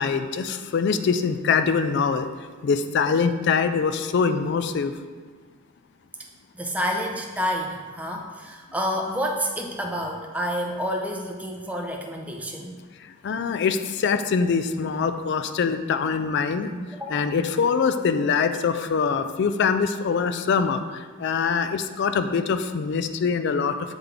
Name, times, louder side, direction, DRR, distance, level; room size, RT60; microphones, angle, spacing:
voice 1, 0.0-2.3 2.6-4.9 13.0-16.7 17.1-23.8, left 5 dB, 55° left, 10 dB, 0.3 m, -24 dB
voice 2, 6.5-12.8 16.7-17.3, equal, 5° right, 1 dB, 0.5 m, -29 dB
7.9 x 3.8 x 3.4 m, 1.5 s
head